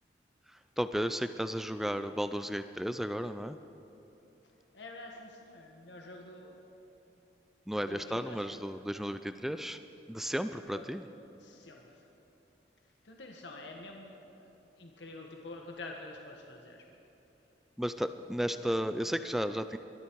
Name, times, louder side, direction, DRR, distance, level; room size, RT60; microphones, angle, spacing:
voice 1, 0.8-3.6 7.7-9.8 10.1-11.0 17.8-19.8, equal, ahead, 10 dB, 0.3 m, -33 dB
voice 2, 4.7-6.6 7.8-8.8 10.7-11.0 11.4-11.9 13.0-14.5 14.8-16.8, left 2 dB, 85° left, 1 dB, 1.4 m, -47 dB
23.0 x 12.5 x 4.6 m, 2.9 s
head